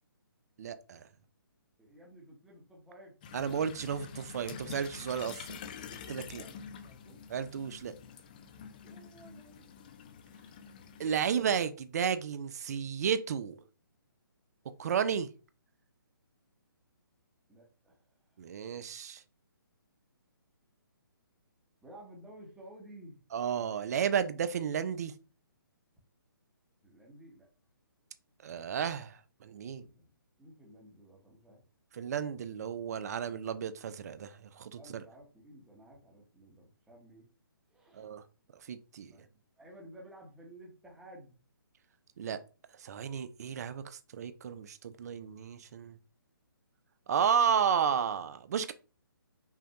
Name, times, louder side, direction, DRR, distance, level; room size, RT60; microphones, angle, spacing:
voice 1, 0.6-1.1 3.3-5.6 6.1-6.4 7.3-7.9 11.0-13.6 14.8-15.3 18.4-19.2 23.3-25.1 28.4-29.8 31.9-35.0 37.9-38.2 38.5-39.1 42.2-42.4 42.7-46.0 47.1-48.7, right 7 dB, 45° right, 0.5 m, -33 dB
voice 2, 1.8-3.2 6.3-7.2 8.8-9.7 17.5-18.1 21.8-23.2 26.8-27.5 29.8-30.1 30.4-31.6 34.8-37.3 37.7-38.1 39.1-39.3 39.6-41.4, right 1 dB, 5° right, 1.0 m, -54 dB
sound 1, 3.2-11.6, left 7 dB, 25° left, 0.3 m, -48 dB
5.5 x 2.3 x 2.9 m
hypercardioid pair, 155°, 12 cm